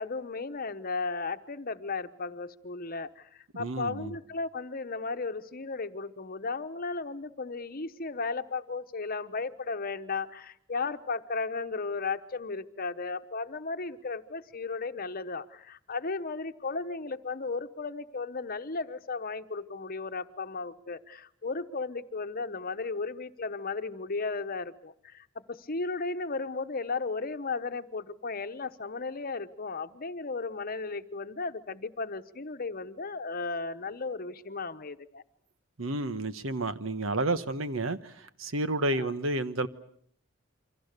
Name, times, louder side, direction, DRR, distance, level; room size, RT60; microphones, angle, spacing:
voice 1, 0.0-35.2 38.9-39.1, left 4 dB, 45° left, 1.0 m, -35 dB
voice 2, 3.5-4.1 35.8-39.7, right 2 dB, 85° right, 1.2 m, -31 dB
28.5 x 24.5 x 6.7 m
head